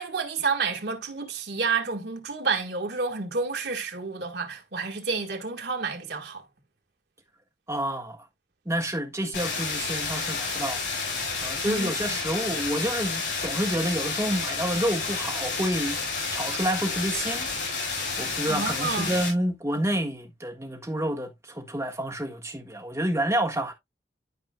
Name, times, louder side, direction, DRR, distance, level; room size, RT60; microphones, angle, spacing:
voice 1, 0.0-6.4 11.6-12.2 18.5-19.2, right 4 dB, 65° right, 1.7 m, -30 dB
voice 2, 7.7-8.2 8.6-10.8 11.4-16.0 16.3-17.5 17.7-23.7, right 1 dB, 15° right, 1.5 m, -29 dB
sound 1, 9.3-19.3, left 4 dB, 85° left, 5.5 m, -30 dB
12.0 x 4.7 x 2.3 m
head